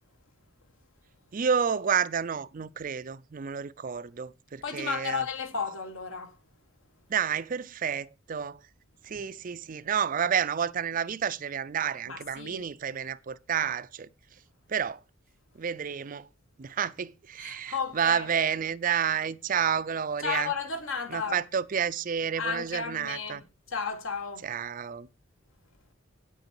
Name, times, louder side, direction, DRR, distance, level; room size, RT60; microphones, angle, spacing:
voice 1, 1.3-5.2 7.1-8.6 9.0-14.1 14.7-15.0 15.5-16.3 16.6-20.5 21.1-23.4 24.4-25.1, right 7 dB, 40° right, 0.4 m, -30 dB
voice 2, 4.6-6.3 12.1-12.6 17.4-18.3 20.2-21.4 22.4-23.4 23.7-24.5, left 5 dB, 85° left, 1.4 m, -33 dB
9.0 x 7.8 x 4.6 m
head